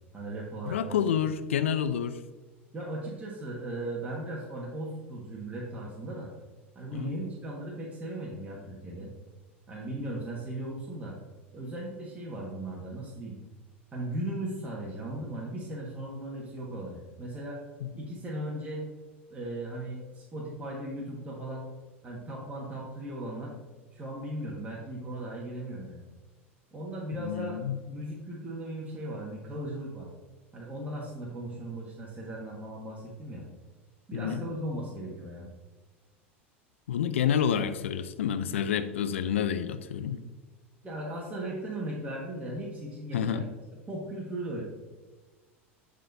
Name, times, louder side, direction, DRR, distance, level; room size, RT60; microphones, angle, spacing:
voice 1, 0.1-0.9 2.7-6.3 6.7-9.1 9.7-11.1 11.5-13.4 13.9-17.6 18.0-18.8 19.3-21.6 22.0-23.5 23.9-26.1 26.7-27.6 27.9-30.1 30.5-33.4 34.1-35.5 40.8-43.5 43.9-44.6, right 1 dB, 20° right, -4 dB, 1.6 m, -37 dB
voice 2, 0.7-2.2 6.9-7.1 17.8-17.9 27.2-27.8 34.1-34.5 36.9-40.2 43.1-43.5, left 8 dB, 75° left, 12 dB, 0.5 m, -29 dB
11.0 x 4.2 x 2.7 m, 1.3 s
hypercardioid pair, 85°, 7 cm